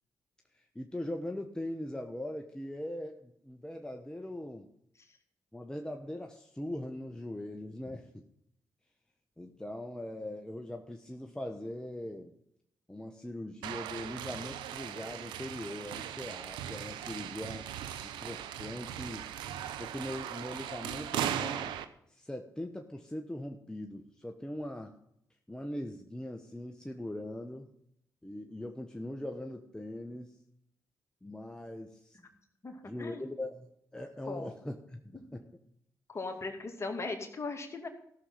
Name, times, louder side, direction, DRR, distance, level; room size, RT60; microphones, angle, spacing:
voice 1, 0.7-4.7 5.5-8.2 9.4-12.4 12.9-17.7 18.0-19.3 19.8-21.8 22.1-24.9 25.5-27.7 28.2-30.4 31.2-32.2 32.8-35.5, left 1 dB, 10° left, 4 dB, 1.1 m, -41 dB
sound 1, 13.6-21.9, right 10 dB, 80° right, 0.6 m, -38 dB
voice 2, 32.6-33.2 34.3-34.5 36.1-37.9, left 3 dB, 35° left, 3 dB, 2.4 m, -38 dB
14.5 x 6.5 x 5.6 m, 0.74 s
hypercardioid pair, 45°, 8 cm